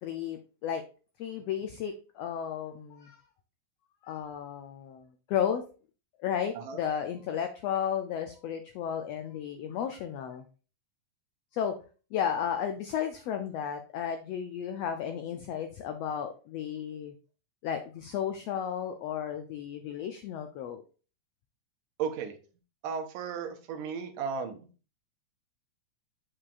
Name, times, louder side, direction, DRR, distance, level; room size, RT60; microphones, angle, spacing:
voice 1, 0.0-0.8 1.2-3.2 4.0-5.6 6.2-10.4 11.5-11.7 12.1-17.1 17.6-20.8, left 8 dB, 85° left, 6 dB, 1.4 m, -33 dB
voice 2, 22.0-22.3 22.8-24.6, right 6 dB, 90° right, 5 dB, 2.6 m, -34 dB
7.5 x 6.5 x 2.5 m, 0.36 s
omnidirectional pair, 3.6 m